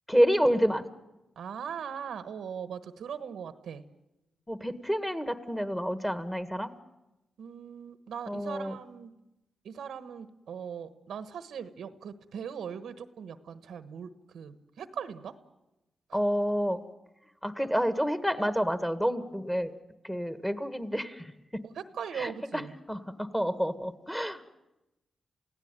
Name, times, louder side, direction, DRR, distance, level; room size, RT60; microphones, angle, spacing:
voice 1, 0.1-0.9 4.5-6.7 8.3-8.8 16.1-16.8 17.4-19.7 20.0-21.3 22.2-22.6 22.9-24.4, equal, 5° left, 10 dB, 1.7 m, -28 dB
voice 2, 1.4-3.8 7.4-9.1 9.6-15.3 16.1-16.2 21.6-22.7, right 7 dB, 90° right, 11 dB, 1.3 m, -40 dB
29.0 x 16.5 x 9.1 m, 0.98 s
cardioid pair, 85°, 0 cm